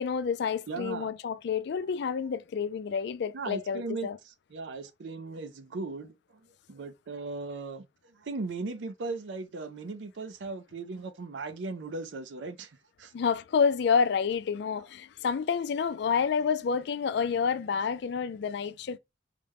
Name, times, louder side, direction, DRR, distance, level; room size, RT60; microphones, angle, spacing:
voice 1, 0.0-4.2 13.1-19.0, left 6 dB, 65° left, 0.3 m, -29 dB
voice 2, 0.7-1.1 3.3-6.1 6.7-13.1, right 3 dB, 80° right, 0.5 m, -38 dB
4.9 x 2.2 x 3.4 m
head